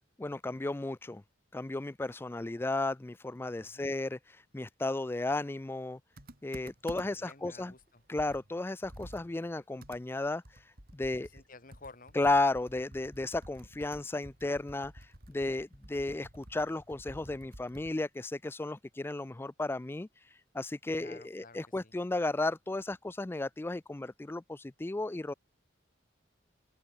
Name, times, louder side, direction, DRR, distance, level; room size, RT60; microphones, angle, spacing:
voice 1, 0.2-1.2 1.5-6.0 6.4-7.7 8.1-11.3 12.1-25.3, left 2 dB, 10° left, 0.3 m, -34 dB
Computer keyboard, 6.2-7.3 7.8-7.9 8.2-18.0, right 1 dB, 55° right, 5.8 m, -51 dB
voice 2, 7.0-8.0 11.2-12.2 20.9-21.9, left 3 dB, 45° left, 4.0 m, -53 dB
open air
head